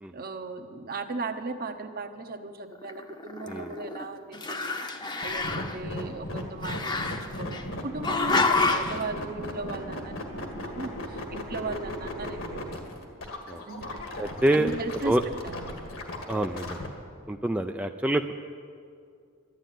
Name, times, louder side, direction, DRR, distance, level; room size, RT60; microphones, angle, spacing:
voice 1, 0.1-4.8 5.2-7.1 7.4-12.8 13.7-13.9 14.5-15.2 15.4-15.8 16.6-16.8, right 3 dB, 45° right, 7 dB, 1.0 m, -37 dB
Growling, 2.8-4.1 4.3-5.8 6.6-7.6 8.0-9.0, left 3 dB, 20° left, 0.9 m, -28 dB
sound 1, 5.2-16.9, left 1 dB, 70° left, 1.9 m, -37 dB
voice 2, 14.2-14.7 15.0-15.2 16.3-16.8 17.3-18.3, right 1 dB, 5° right, 5 dB, 0.4 m, -26 dB
12.0 x 11.5 x 9.3 m, 2.2 s
head